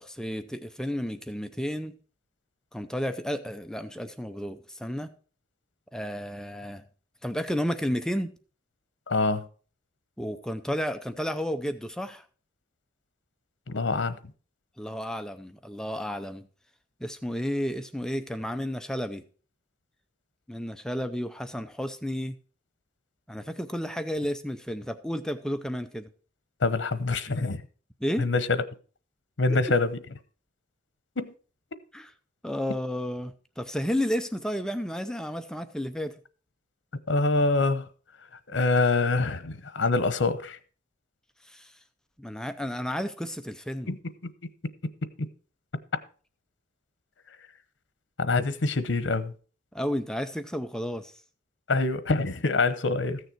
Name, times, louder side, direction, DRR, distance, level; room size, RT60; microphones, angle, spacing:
voice 1, 0.0-2.0 2.7-5.1 5.9-6.8 7.2-8.3 10.2-12.3 14.8-16.5 17.0-19.2 20.5-22.4 23.3-26.1 28.0-28.3 29.5-29.6 31.9-32.1 32.4-36.2 41.4-41.8 42.2-43.9 49.7-51.1, equal, 5° left, 0.5 m, -32 dB
voice 2, 9.1-9.4 13.7-14.2 26.6-27.6 28.2-28.6 29.4-30.0 31.2-31.3 37.1-37.9 38.5-40.6 43.9-44.0 44.2-44.3 45.2-45.3 48.2-49.3 51.7-53.2, left 3 dB, 85° left, 0.9 m, -25 dB
14.5 x 6.6 x 4.6 m
head